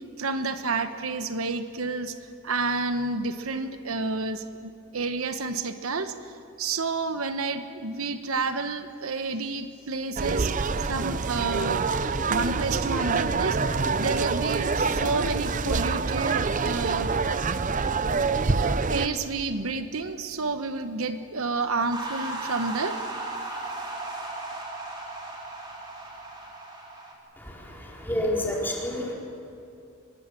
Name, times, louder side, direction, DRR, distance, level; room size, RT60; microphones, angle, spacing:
voice 1, 0.0-2.2 2.4-10.5 10.8-11.9 12.3-17.1 18.9-22.9, right 3 dB, 85° right, 9 dB, 1.1 m, -30 dB
sound 1, 10.2-19.1, right 4 dB, 35° right, 0.6 m, -26 dB
sound 2, 21.9-27.1, right 2 dB, 20° right, 3.6 m, -36 dB
voice 2, 27.4-29.1, left 1 dB, 10° left, -3 dB, 4.3 m, -29 dB
23.0 x 20.5 x 7.6 m, 2.5 s
head